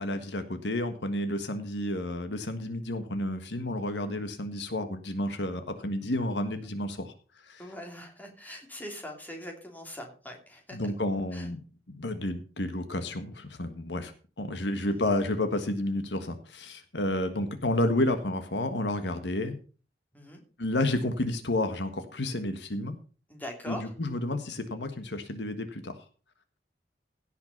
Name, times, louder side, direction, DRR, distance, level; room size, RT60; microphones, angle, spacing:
voice 1, 0.0-7.1 7.4-7.6 10.7-11.6 11.9-19.6 20.6-23.0 23.7-25.9, left 1 dB, 75° left, 8 dB, 1.6 m, -31 dB
voice 2, 7.6-10.9 11.3-11.5 14.8-15.0 20.1-20.4 23.3-23.8, equal, 10° left, 2 dB, 3.0 m, -42 dB
16.5 x 5.9 x 5.5 m, 0.37 s
head